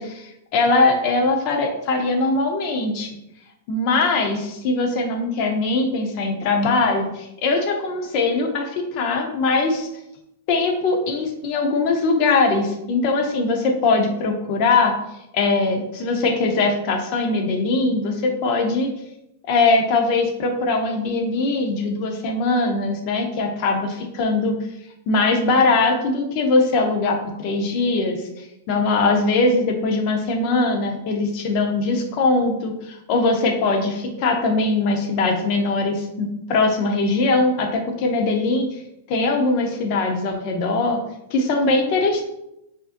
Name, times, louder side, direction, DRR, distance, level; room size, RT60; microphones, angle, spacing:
voice 1, 0.0-3.1 3.7-9.9 10.5-14.9 15.3-18.9 19.5-24.6 25.1-28.2 28.7-38.8 39.1-41.0 41.3-42.2, left 3 dB, 35° left, 3 dB, 0.6 m, -21 dB
5.0 x 2.6 x 2.5 m, 0.84 s
supercardioid pair, 170°, 0 cm